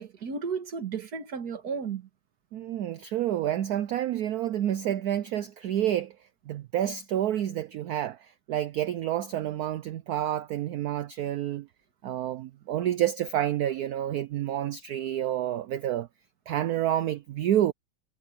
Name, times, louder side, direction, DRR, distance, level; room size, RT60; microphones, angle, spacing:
voice 1, 0.0-2.1, right 5 dB, 50° right, 2.1 m, -34 dB
voice 2, 2.5-6.2 6.5-11.7 12.0-16.1 16.5-17.7, right 11 dB, 75° right, 0.8 m, -29 dB
omnidirectional pair, 2.2 m